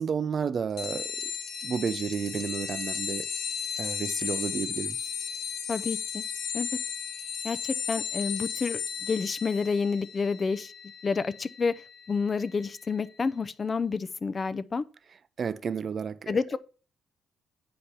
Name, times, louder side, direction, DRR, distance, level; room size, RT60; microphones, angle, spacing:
voice 1, 0.0-1.3 1.6-3.3 3.8-5.0 15.4-16.6, right 6 dB, 50° right, 0.5 m, -32 dB
sound 1, 0.8-12.9, left 7 dB, 85° left, 1.3 m, -35 dB
voice 2, 5.7-6.2 6.5-6.7 7.4-10.7 11.0-11.7 12.1-14.8 16.3-16.6, left 5 dB, 35° left, 0.5 m, -29 dB
8.8 x 5.0 x 4.3 m
cardioid pair, 90°, 0 cm